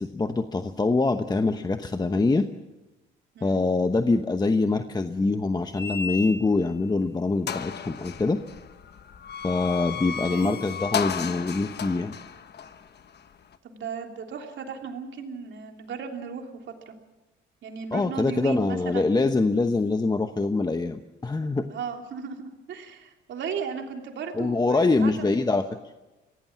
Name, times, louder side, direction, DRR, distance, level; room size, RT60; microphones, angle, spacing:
voice 1, 0.0-2.5 3.4-8.4 9.4-12.1 17.9-21.7 24.3-25.7, left 3 dB, 20° left, 7 dB, 1.0 m, -24 dB
voice 2, 3.3-3.7 10.3-10.6 13.6-16.5 16.9-17.0 17.6-19.1 21.7-25.3, right 6 dB, 70° right, 3 dB, 3.2 m, -35 dB
sound 1, 5.7-6.7 7.1-7.2 7.5-13.6, left 7 dB, 55° left, 1.3 m, -34 dB
24.0 x 17.0 x 7.4 m, 1.1 s
cardioid pair, 90°, 20 cm